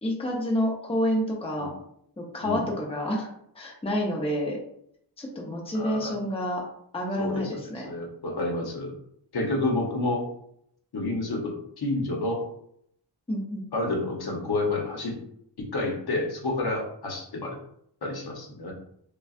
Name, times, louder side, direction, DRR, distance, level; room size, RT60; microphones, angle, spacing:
voice 1, 0.0-1.7 2.2-3.3 3.5-4.6 5.2-6.6 6.9-7.9 13.3-13.7, equal, 15° left, -2 dB, 0.7 m, -28 dB
voice 2, 5.7-6.2 7.2-8.9 9.3-10.3 10.9-12.4 13.7-15.2 15.6-17.6 18.0-18.7, left 2 dB, 60° left, 0 dB, 0.9 m, -29 dB
5.3 x 2.3 x 2.4 m, 0.71 s
wide cardioid pair, 155°, 43 cm